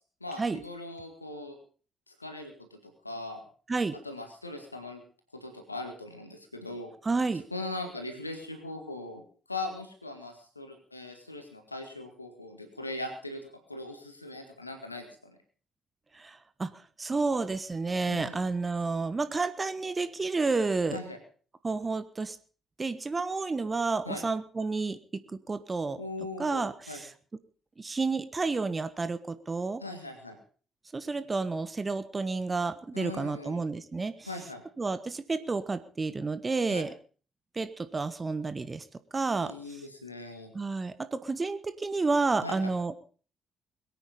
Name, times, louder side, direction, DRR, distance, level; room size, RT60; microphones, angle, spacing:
voice 1, 0.2-1.5 2.1-3.4 3.9-5.0 5.3-6.9 7.5-9.2 9.5-13.4 13.7-15.4 18.1-18.5 20.9-21.2 24.1-24.2 26.0-27.0 29.8-30.4 32.9-33.6 34.2-34.6 36.7-36.9 39.4-40.5 42.4-42.7, left 2 dB, 90° left, 6 dB, 2.0 m, -40 dB
voice 2, 7.0-7.4 16.1-16.7 17.0-21.0 21.6-22.4 22.8-25.2 25.5-26.0 26.4-27.1 27.8-29.8 30.9-34.3 34.8-36.9 37.5-38.8 39.1-39.5 40.5-43.0, right 3 dB, 30° right, 12 dB, 1.3 m, -30 dB
22.0 x 9.2 x 5.4 m, 0.41 s
figure-of-eight pair, 45°, 0 cm